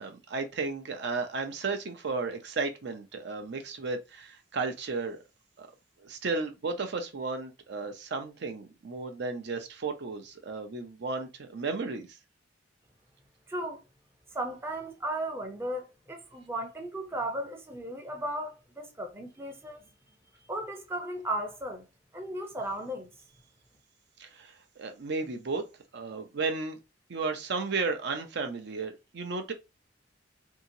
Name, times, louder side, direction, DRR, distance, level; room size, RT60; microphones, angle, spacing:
voice 1, 0.0-5.2 5.6-5.7 6.0-12.1 24.2-25.7 25.9-26.8 27.1-29.5, right 4 dB, 65° right, 0.5 m, -34 dB
voice 2, 13.5-13.8 14.3-19.8 20.5-21.8 22.1-23.1, right 1 dB, 15° right, 0.5 m, -35 dB
2.8 x 2.8 x 2.6 m
head